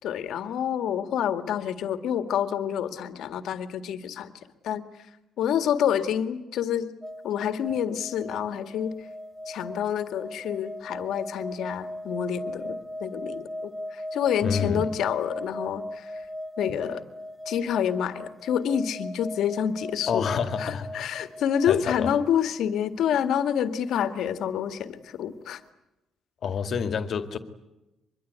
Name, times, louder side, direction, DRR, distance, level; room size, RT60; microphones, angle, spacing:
voice 1, 0.0-4.3 4.6-5.1 5.4-6.9 7.2-9.1 9.5-16.3 16.6-17.1 17.5-25.6, left 9 dB, 70° left, 9 dB, 2.0 m, -28 dB
sound 1, 7.0-22.1 22.3-22.6, left 1 dB, 5° right, 1.1 m, -38 dB
voice 2, 14.4-14.9 16.7-16.8 20.1-21.1 21.7-22.1 26.4-27.4, left 6 dB, 50° left, 9 dB, 2.2 m, -28 dB
24.5 x 22.5 x 9.5 m, 0.95 s
cardioid pair, 135°, 0 cm